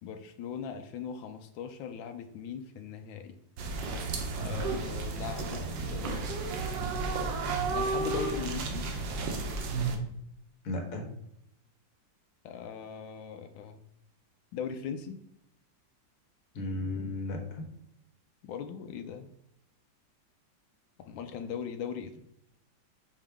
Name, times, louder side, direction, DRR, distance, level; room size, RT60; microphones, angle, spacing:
voice 1, 0.0-3.3 4.4-6.5 7.7-8.9 12.4-13.8 14.5-15.2 18.4-19.3 21.0-22.2, left 7 dB, 85° left, 7 dB, 1.3 m, -39 dB
sound 1, 3.6-10.0, right 3 dB, 70° right, 1.5 m, -32 dB
voice 2, 10.6-11.1 16.5-17.6, left 2 dB, 50° left, 2 dB, 1.5 m, -34 dB
5.5 x 5.4 x 3.5 m, 0.76 s
omnidirectional pair, 2.1 m